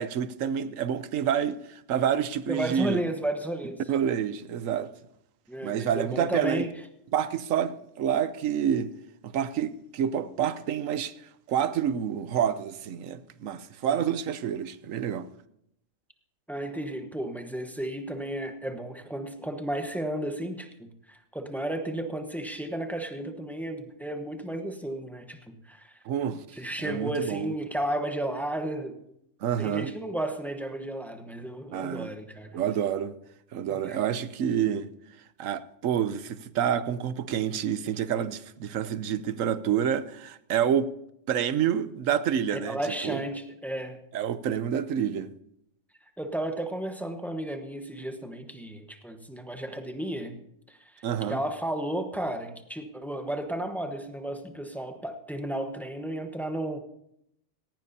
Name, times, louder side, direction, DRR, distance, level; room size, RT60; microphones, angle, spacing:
voice 1, 0.0-3.0 3.9-4.9 5.6-6.7 7.1-8.9 9.2-11.1 11.5-15.3 26.0-26.4 26.8-27.5 29.4-29.9 31.7-32.1 32.5-33.1 33.5-34.9 35.4-40.9 41.3-43.2 44.1-45.3 51.0-51.4, right 9 dB, 85° right, 1.1 m, -28 dB
voice 2, 2.5-3.8 5.5-6.7 16.5-25.9 26.5-29.0 29.6-32.6 33.7-34.0 42.5-44.0 46.2-50.4 50.9-51.0 51.3-56.8, right 1 dB, ahead, 1.0 m, -33 dB
18.0 x 16.0 x 2.8 m
omnidirectional pair, 1.3 m